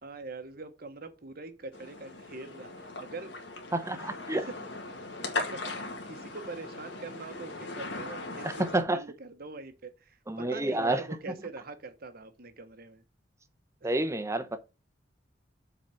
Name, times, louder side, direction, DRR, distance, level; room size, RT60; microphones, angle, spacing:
voice 1, 0.0-3.4 4.3-4.4 4.9-5.1 5.5-13.0 13.8-13.9, right 3 dB, 55° right, 1.1 m, -43 dB
sound 1, 1.7-8.8, left 2 dB, 80° left, 1.9 m, -39 dB
voice 2, 3.7-4.5 8.4-9.0 10.3-11.1 13.8-14.6, right 2 dB, 15° right, 0.8 m, -29 dB
7.5 x 4.1 x 5.7 m
head